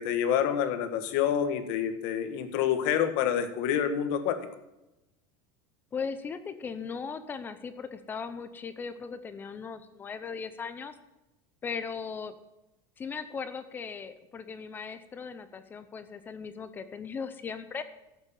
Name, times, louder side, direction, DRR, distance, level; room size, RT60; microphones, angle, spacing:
voice 1, 0.0-4.4, left 9 dB, 55° left, 8 dB, 1.7 m, -27 dB
voice 2, 5.9-11.0 11.6-12.4 13.0-17.8, left 5 dB, 15° left, 11 dB, 0.7 m, -38 dB
13.0 x 8.3 x 7.2 m, 0.95 s
cardioid pair, 175°, 12 cm